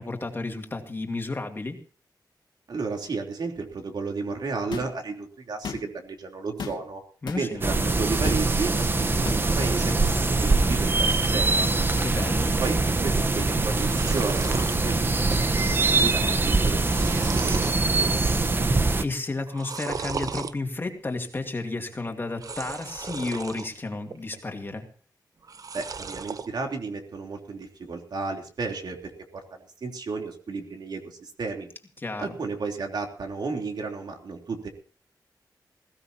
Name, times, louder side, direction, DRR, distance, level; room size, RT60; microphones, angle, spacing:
voice 1, 0.0-1.8 7.2-7.8 12.0-12.5 19.0-24.9 32.0-32.3, left 3 dB, 30° left, 4 dB, 2.5 m, -32 dB
voice 2, 2.7-7.0 7.3-11.7 12.6-18.2 25.7-31.7 32.2-34.7, right 4 dB, 65° right, 3 dB, 3.3 m, -33 dB
sound 1, 4.7-5.0 5.5-6.1 6.6-7.0 7.3-7.5 8.2-8.5 9.2-9.5 10.5-10.6 12.0-12.1 13.4-13.5 14.7-14.8 16.2-16.3 17.8-17.9, left 6 dB, 85° left, 2.3 m, -37 dB
sound 2, 7.6-19.0, right 3 dB, 30° right, 1.0 m, -23 dB
sound 3, 13.6-14.7 15.2-15.6 15.9-16.0 16.5-17.8 18.3-18.7 19.5-20.5 22.3-23.7 24.1-24.7 25.4-26.5, right 5 dB, 50° right, 0.8 m, -35 dB
20.5 x 16.0 x 2.8 m, 0.38 s
wide cardioid pair, 110°, 8 cm